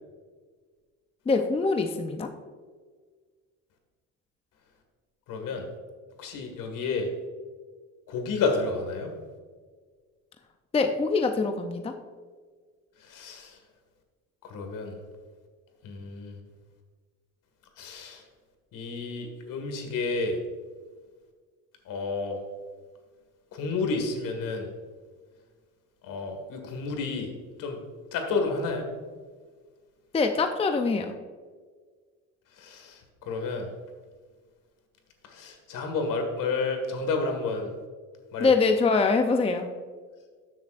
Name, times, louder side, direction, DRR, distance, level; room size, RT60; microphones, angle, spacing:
voice 1, 1.3-2.3 10.7-11.9 30.1-31.1 38.4-39.7, left 4 dB, 15° left, 6 dB, 0.6 m, -24 dB
voice 2, 5.3-5.7 6.2-7.1 8.1-9.1 13.0-13.6 14.4-15.0 15.8-16.4 17.8-18.2 18.7-20.4 21.9-22.4 23.5-24.7 26.0-27.3 27.6-27.8 28.1-28.9 32.6-33.0 33.3-33.7 35.2-37.7 38.3-38.5, left 3 dB, 65° left, 4 dB, 2.0 m, -30 dB
13.0 x 7.0 x 2.5 m, 1.5 s
cardioid pair, 100°, 34 cm